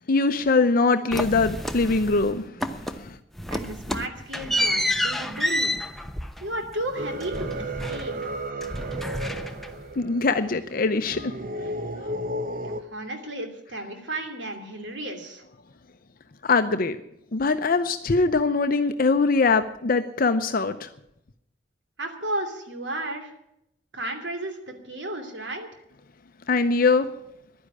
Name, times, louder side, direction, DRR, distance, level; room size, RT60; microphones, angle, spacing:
voice 1, 0.1-3.2 10.0-11.4 16.4-17.0 17.3-20.9 26.5-27.1, left 3 dB, 55° left, 9 dB, 0.7 m, -22 dB
sound 1, 1.1-2.3 2.6-3.1 3.4-8.3 8.6-9.9, left 1 dB, ahead, 0.8 m, -29 dB
voice 2, 3.5-5.8 6.4-8.3 12.6-15.4 22.0-23.3 23.9-25.7, right 1 dB, 85° right, 5 dB, 2.8 m, -33 dB
sound 2, 6.9-12.8, right 1 dB, 50° right, 1.0 m, -34 dB
11.5 x 10.0 x 9.7 m, 0.79 s
head